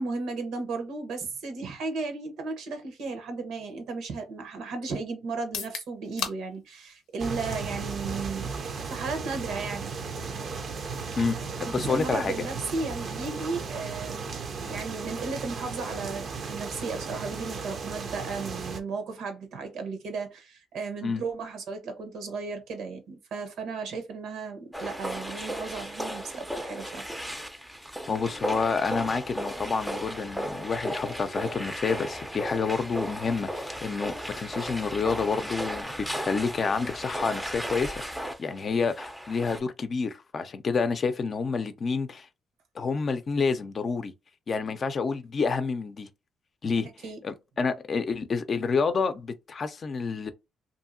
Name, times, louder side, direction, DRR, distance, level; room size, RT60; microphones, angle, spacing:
voice 1, 0.0-8.5 8.8-9.9 11.7-14.3 14.7-27.1 47.0-47.2, right 4 dB, 80° right, 1.0 m, -35 dB
sound 1, 5.4-19.2, left 8 dB, 90° left, 0.6 m, -46 dB
sound 2, 7.2-18.8, right 5 dB, 55° right, 0.6 m, -35 dB
voice 2, 11.2-12.5 21.0-21.2 28.1-35.9 36.2-38.0 38.4-42.3 42.8-44.1 44.5-46.1 46.6-46.9 47.2-50.3, left 5 dB, 45° left, 0.5 m, -28 dB
sound 3, 24.7-39.6, equal, 5° right, 0.5 m, -35 dB
2.7 x 2.7 x 2.6 m
cardioid pair, 90°, 0 cm